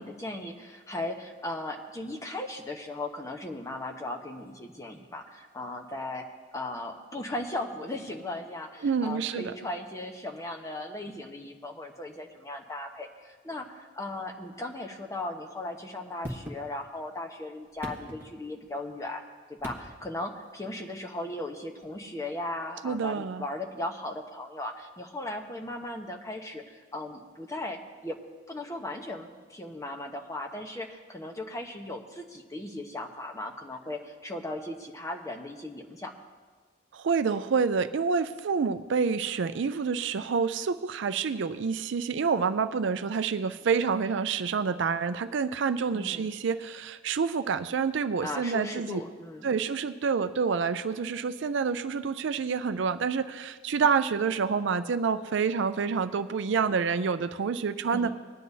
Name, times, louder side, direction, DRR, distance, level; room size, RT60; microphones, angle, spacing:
voice 1, 0.0-19.2 19.5-28.2 28.5-36.1 45.9-46.3 48.2-49.5 57.9-58.1, left 1 dB, 15° left, 1 dB, 0.9 m, -37 dB
voice 2, 8.8-9.5 22.8-23.4 36.9-49.0 49.4-58.1, right 5 dB, 65° right, 12 dB, 0.4 m, -28 dB
sound 1, 16.2-17.1 17.6-18.8 19.6-20.3 21.8-21.9, equal, 10° right, 1.3 m, -41 dB
20.0 x 10.0 x 2.7 m, 1.5 s
head